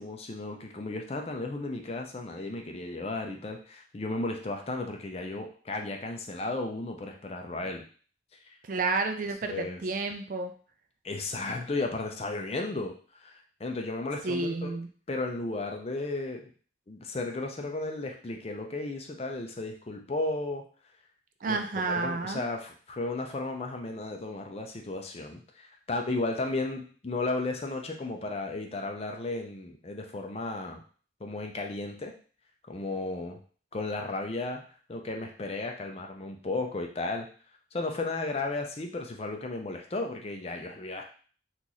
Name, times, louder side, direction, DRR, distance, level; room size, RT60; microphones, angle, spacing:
voice 1, 0.0-7.8 8.3-8.5 9.5-9.8 11.0-14.8 15.1-16.5 16.9-20.6 21.5-30.8 31.2-32.1 32.7-33.4 33.7-34.6 34.9-37.3 37.7-41.0, left 2 dB, 30° left, 3 dB, 0.5 m, -34 dB
voice 2, 8.7-10.5 14.2-14.9 21.4-22.4, right 3 dB, 45° right, 6 dB, 0.4 m, -30 dB
3.0 x 2.5 x 3.9 m, 0.42 s
head